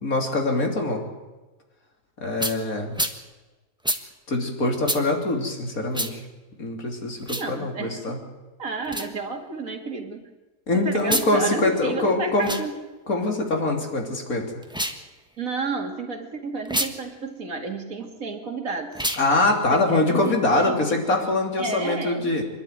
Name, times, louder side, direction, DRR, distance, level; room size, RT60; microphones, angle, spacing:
voice 1, 0.0-1.0 2.2-3.0 4.3-6.2 6.6-8.2 10.7-12.5 13.1-14.5 19.2-22.4, left 2 dB, 60° left, 2 dB, 3.5 m, -23 dB
sound 1, 2.4-2.6 2.9-3.2 3.8-4.0 4.8-5.0 5.9-6.1 7.2-7.5 8.8-9.1 11.0-11.3 12.3-12.6 14.6-15.0 16.6-16.9 18.9-19.2, right 1 dB, 5° right, 1.1 m, -27 dB
voice 2, 7.4-8.2 8.6-10.2 10.7-12.8 15.4-19.0 19.7-21.0 21.6-22.4, right 3 dB, 55° right, 4 dB, 2.5 m, -31 dB
26.5 x 11.5 x 9.4 m, 1.2 s
omnidirectional pair, 1.7 m